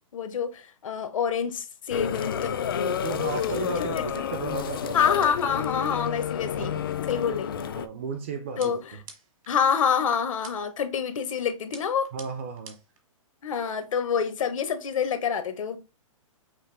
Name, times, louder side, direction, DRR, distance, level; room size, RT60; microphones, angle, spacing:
voice 1, 0.1-3.0 4.0-4.3 4.9-6.7 7.1-7.5 8.6-8.9 9.5-12.1 13.4-15.8, left 7 dB, 70° left, 1.0 m, -27 dB
sound 1, 1.9-7.9, left 8 dB, 40° left, 0.4 m, -30 dB
voice 2, 3.0-5.1 6.5-6.8 7.6-8.7 12.1-12.8, right 5 dB, 20° right, 0.4 m, -34 dB
sound 2, 8.6-9.5 10.4-10.9 11.7-13.0, right 5 dB, 75° right, 1.3 m, -47 dB
5.7 x 2.5 x 3.2 m
hypercardioid pair, 175°, 17 cm